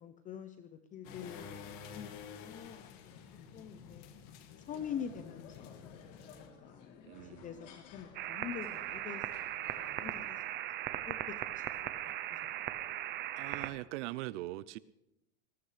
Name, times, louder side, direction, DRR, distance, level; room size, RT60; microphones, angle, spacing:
voice 1, 0.0-3.2 3.5-4.1 4.7-5.8 6.3-9.2 10.0-10.4 11.1-11.2 11.4-11.6 12.0-12.4, left 8 dB, 20° left, 9 dB, 0.6 m, -45 dB
sound 1, 1.0-6.5, left 7 dB, 50° left, 2.0 m, -50 dB
sound 2, 4.7-10.3, left 6 dB, 85° left, 3.4 m, -56 dB
voice 2, 7.0-7.7 10.0-10.4 12.0-12.1 13.3-14.8, right 18 dB, 65° right, 18 dB, 0.6 m, -42 dB
sound 3, 8.1-13.7, right 13 dB, 30° right, 0.7 m, -38 dB
19.5 x 19.0 x 3.3 m, 0.89 s
supercardioid pair, 155°, 37 cm